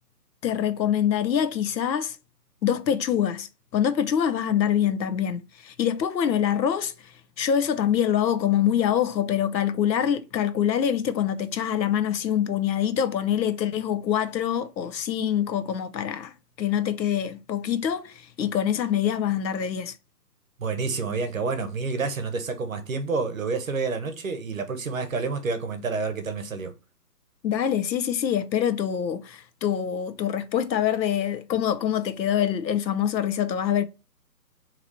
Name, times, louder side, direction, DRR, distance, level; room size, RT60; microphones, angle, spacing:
voice 1, 0.4-2.2 2.6-19.9 27.4-33.8, left 9 dB, 90° left, 0.7 m, -25 dB
voice 2, 20.6-26.7, right 4 dB, 55° right, 0.8 m, -29 dB
3.9 x 2.9 x 2.9 m
hypercardioid pair, 180°, 50 cm